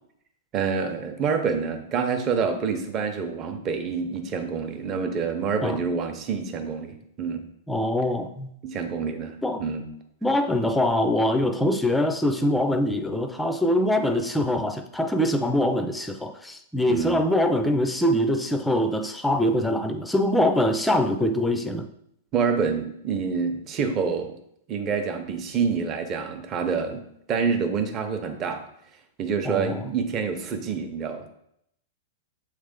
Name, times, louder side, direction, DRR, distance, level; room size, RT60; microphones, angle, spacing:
voice 1, 0.5-7.4 8.6-9.8 16.9-17.2 22.3-24.4 24.7-27.0 27.3-28.6 29.2-31.2, right 5 dB, 25° right, 6 dB, 0.8 m, -27 dB
voice 2, 7.7-8.5 9.4-9.7 10.2-21.9 29.4-29.8, left 1 dB, 5° left, 6 dB, 0.5 m, -23 dB
7.2 x 3.3 x 5.2 m, 0.74 s
hypercardioid pair, 150°, 0 cm